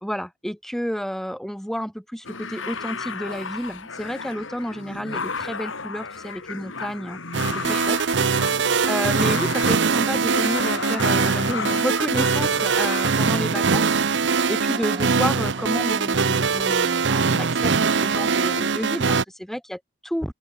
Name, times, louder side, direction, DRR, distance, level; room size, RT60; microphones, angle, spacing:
voice 1, 0.0-7.2 7.5-8.0 8.9-13.9 14.5-20.3, equal, ahead, 2.5 m, -30 dB
sound 1, 2.2-13.3, left 4 dB, 85° left, 4.0 m, -33 dB
sound 2, 7.3-19.2, right 5 dB, 60° right, 0.8 m, -22 dB
sound 3, 14.4-17.3 17.6-19.0, right 3 dB, 25° right, 3.2 m, -44 dB
open air
head